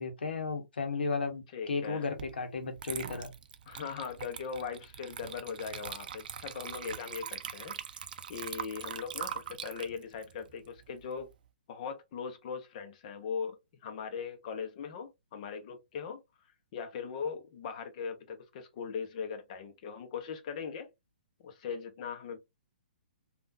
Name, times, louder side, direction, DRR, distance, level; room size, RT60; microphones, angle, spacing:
voice 1, 0.0-3.3, left 4 dB, 75° left, 1.0 m, -34 dB
voice 2, 1.5-2.1 3.7-11.3 11.7-16.2 16.7-20.9 21.4-22.4, left 6 dB, 45° left, 0.9 m, -40 dB
Water / Liquid, 2.2-2.3 2.8-11.3, right 8 dB, 60° right, 0.5 m, -42 dB
3.5 x 2.5 x 2.6 m
hypercardioid pair, 130°, 5 cm